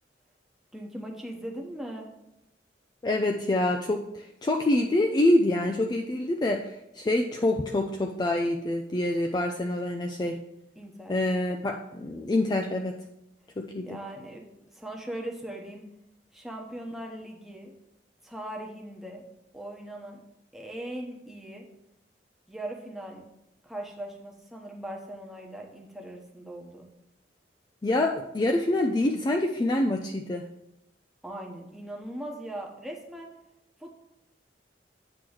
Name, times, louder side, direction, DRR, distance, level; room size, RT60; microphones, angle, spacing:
voice 1, 0.7-2.1 10.8-11.2 13.8-15.8 16.3-17.7 18.2-19.2 19.5-20.2 20.5-21.7 22.5-23.2 23.6-26.9 31.2-33.3 33.8-34.0, right 1 dB, ahead, -1 dB, 0.9 m, -39 dB
voice 2, 3.0-10.4 11.1-13.0 13.6-14.0 27.8-30.5, left 1 dB, 25° left, 3 dB, 0.4 m, -26 dB
8.6 x 3.0 x 6.2 m, 0.85 s
head